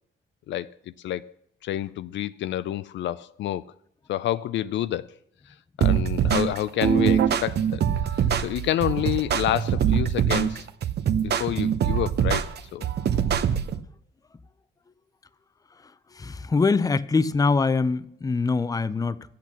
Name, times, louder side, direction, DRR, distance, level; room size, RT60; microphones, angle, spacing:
voice 1, 1.6-3.7 4.1-5.1 5.8-7.8 8.1-10.7 11.2-12.9, left 12 dB, 70° left, 0.4 m, -28 dB
sound 1, 5.8-13.8, right 8 dB, 55° right, 0.7 m, -23 dB
voice 2, 15.8-19.4, left 4 dB, 20° left, 0.5 m, -24 dB
10.5 x 8.5 x 7.2 m
cardioid pair, 90°, 20 cm